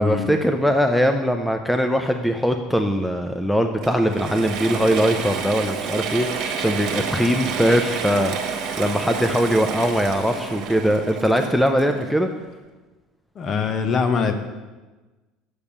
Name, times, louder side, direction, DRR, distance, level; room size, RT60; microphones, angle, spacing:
voice 1, 0.0-12.3, equal, ahead, 6 dB, 0.5 m, -21 dB
Mechanisms / Drill, 3.8-12.4, right 6 dB, 55° right, 1.4 m, -29 dB
voice 2, 13.3-14.3, left 5 dB, 35° left, 8 dB, 1.0 m, -22 dB
6.9 x 6.7 x 7.2 m, 1.2 s
supercardioid pair, 120°, 0 cm